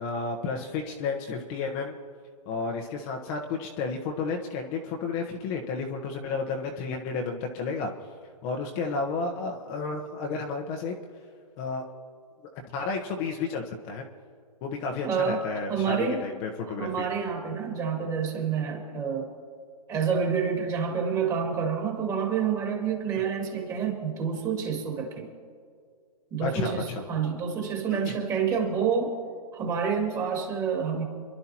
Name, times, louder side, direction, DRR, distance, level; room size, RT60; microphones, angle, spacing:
voice 1, 0.0-2.0 2.5-7.9 8.4-10.9 11.6-11.8 12.7-14.0 14.6-17.1 26.4-27.0 27.9-28.1, left 4 dB, 25° left, 2 dB, 1.1 m, -32 dB
voice 2, 15.0-16.3 16.7-19.3 19.9-25.3 26.3-29.1 29.5-31.0, right 6 dB, 15° right, 1 dB, 2.3 m, -28 dB
28.0 x 12.0 x 3.0 m, 2.1 s
hypercardioid pair, 150°, 20 cm